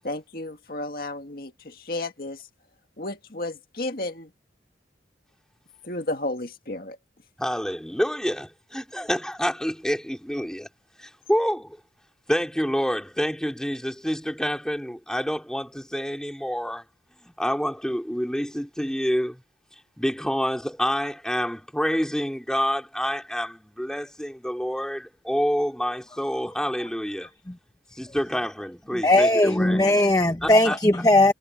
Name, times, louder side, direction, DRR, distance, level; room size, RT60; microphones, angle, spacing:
voice 1, 0.0-2.5 3.0-4.3 5.8-7.0, left 2 dB, 55° left, 2.0 m, -32 dB
voice 2, 7.4-10.7 11.0-11.8 12.3-16.8 17.2-19.4 20.0-27.3 27.9-29.8 30.4-30.8, equal, 5° left, 3.6 m, -28 dB
voice 3, 29.0-31.3, left 1 dB, 20° left, 1.0 m, -18 dB
head